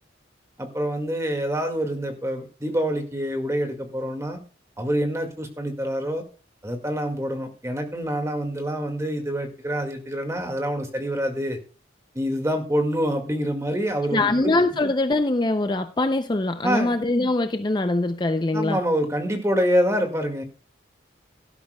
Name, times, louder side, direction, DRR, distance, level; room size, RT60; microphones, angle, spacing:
voice 1, 0.6-4.4 4.8-6.2 6.6-11.6 12.1-14.5 16.6-16.9 18.5-20.4, equal, 15° right, 1.9 m, -26 dB
voice 2, 14.1-18.8, left 2 dB, 25° left, 0.5 m, -23 dB
17.0 x 12.5 x 2.3 m
head